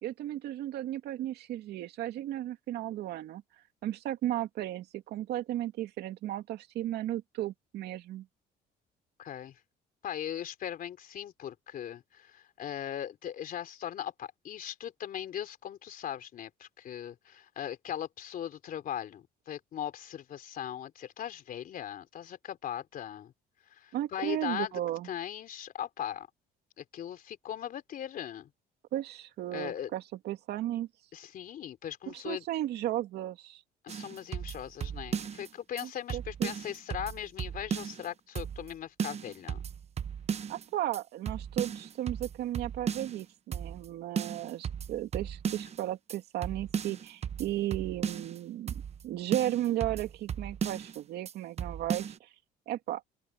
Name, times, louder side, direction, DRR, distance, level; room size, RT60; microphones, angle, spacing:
voice 1, 0.0-3.4 3.8-8.3 23.9-25.1 28.9-30.9 32.1-33.6 36.1-36.5 40.5-48.7 49.0-52.3 52.7-53.0, right 13 dB, 75° right, 2.7 m, -35 dB
voice 2, 9.2-9.6 10.0-23.3 23.7-24.7 25.0-26.3 26.8-28.5 29.5-29.9 31.1-32.4 33.8-39.6, left 10 dB, 55° left, 3.5 m, -39 dB
sound 1, 33.9-35.5 35.8-35.9 36.1-38.1 38.4-38.7 39.0-40.6 40.9-41.0 41.3-43.2 43.5-43.9 44.2-45.8 46.1-46.2 46.4-48.4 48.7-49.0 49.3-51.0 51.3-51.4 51.6-52.2, right 7 dB, 40° right, 0.9 m, -36 dB
open air
cardioid pair, 110°, 17 cm